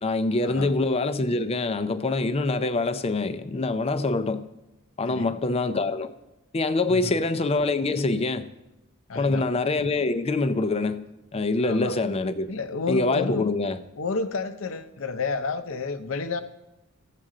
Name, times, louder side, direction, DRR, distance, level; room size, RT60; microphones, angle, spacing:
voice 1, 0.0-4.5 5.0-6.1 6.5-8.5 9.2-12.5 12.9-13.8, left 3 dB, 30° left, 0.5 m, -25 dB
voice 2, 5.1-5.4 6.9-7.2 9.1-9.5 11.6-11.9 12.5-13.5 14.0-16.4, left 4 dB, 75° left, 0.6 m, -30 dB
14.0 x 7.5 x 3.8 m
head